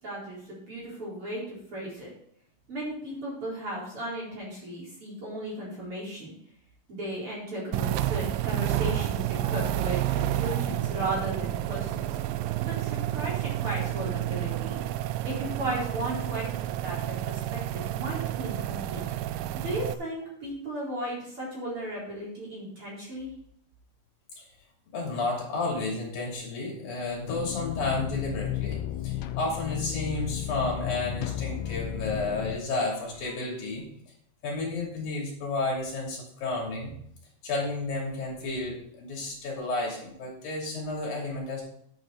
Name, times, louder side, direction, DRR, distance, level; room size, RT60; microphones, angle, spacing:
voice 1, 0.0-2.1 2.7-6.3 6.9-12.2 12.6-14.8 15.2-19.0 19.6-23.3, right 1 dB, 35° right, -6 dB, 4.8 m, -35 dB
sound 1, 7.7-19.9, right 13 dB, 85° right, 2.0 m, -30 dB
voice 2, 24.9-33.8 34.4-36.9 37.4-41.6, left 2 dB, 65° left, -2 dB, 4.6 m, -32 dB
sound 2, 27.3-32.6, left 13 dB, 85° left, 1.9 m, -33 dB
10.0 x 8.9 x 4.0 m, 0.67 s
omnidirectional pair, 4.6 m